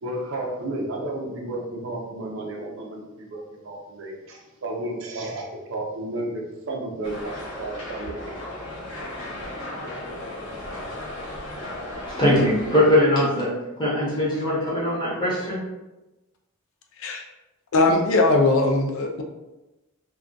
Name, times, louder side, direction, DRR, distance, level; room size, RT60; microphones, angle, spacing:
voice 1, 0.0-8.4, right 1 dB, 65° right, 0 dB, 0.5 m, -32 dB
sound 1, 7.0-12.8, left 1 dB, 85° left, 0.9 m, -35 dB
voice 2, 12.1-13.5 13.8-15.6, left 1 dB, 20° left, -7 dB, 0.7 m, -21 dB
voice 3, 17.7-19.2, left 2 dB, 65° left, 3 dB, 0.4 m, -20 dB
2.3 x 2.3 x 2.5 m, 1.0 s
head